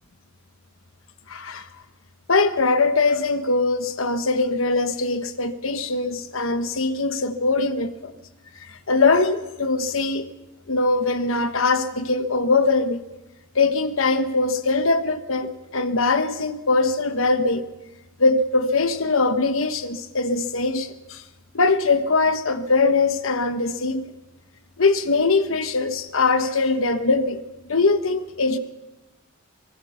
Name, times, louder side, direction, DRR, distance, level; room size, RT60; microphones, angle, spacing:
voice 1, 1.3-1.7 2.3-8.1 8.7-10.3 10.7-13.0 13.5-17.7 18.2-21.2 21.5-24.0 24.8-27.4 27.7-28.6, left 3 dB, 70° left, 1.2 m, -21 dB
25.5 x 19.5 x 5.8 m
head